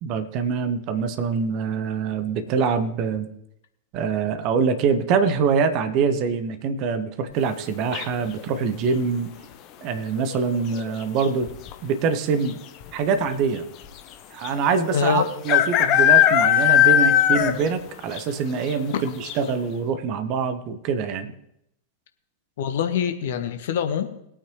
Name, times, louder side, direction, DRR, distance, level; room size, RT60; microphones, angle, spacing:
voice 1, 0.0-3.3 3.9-9.3 9.8-11.6 11.8-12.6 12.9-13.6 14.3-21.3, right 5 dB, 40° right, 11 dB, 1.1 m, -24 dB
sound 1, 7.9-8.4 10.2-10.6 10.9-11.0 11.2-11.7 12.5-12.6 12.8-12.9 14.4-14.5 15.5-17.8 18.1-18.2 18.7-18.8 19.3-19.4, left 11 dB, 40° left, 0.9 m, -18 dB
voice 2, 14.9-15.3 22.6-24.1, left 8 dB, 55° left, 7 dB, 1.3 m, -24 dB
20.5 x 8.7 x 3.2 m, 0.78 s
figure-of-eight pair, 90°, 0 cm